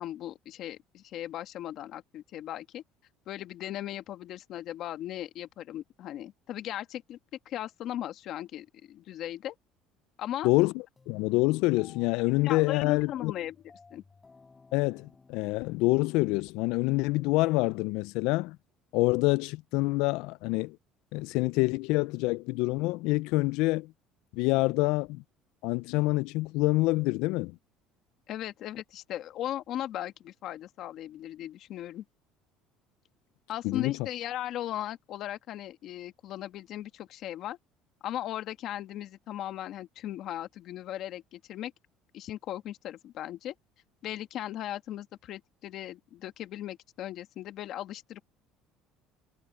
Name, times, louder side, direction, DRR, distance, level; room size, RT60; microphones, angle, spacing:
voice 1, 0.0-2.8 3.3-7.2 7.5-9.5 10.2-10.5 12.4-13.6 13.9-14.0 28.3-32.0 33.5-37.6 38.0-41.7 42.1-43.5 44.0-48.2, left 12 dB, 55° left, 1.6 m, -37 dB
sound 1, 11.0-17.1, left 4 dB, 20° left, 5.1 m, -58 dB
voice 2, 11.1-13.3 14.7-18.6 18.9-20.8 21.1-23.9 24.3-25.2 25.6-27.6 33.6-33.9, left 22 dB, 80° left, 0.3 m, -26 dB
cardioid pair, 120°, 0 cm